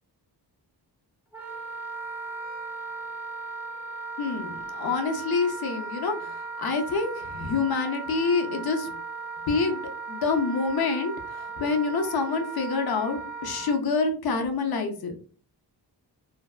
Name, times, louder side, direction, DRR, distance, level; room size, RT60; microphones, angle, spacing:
Wind instrument woodwind instrument, 1.3-13.8, right 4 dB, 5° right, 0.4 m, -37 dB
voice 1, 4.2-8.9 9.5-15.2, left 4 dB, 60° left, 5 dB, 0.6 m, -27 dB
2.6 x 2.2 x 2.3 m, 0.41 s
wide cardioid pair, 150°, 42 cm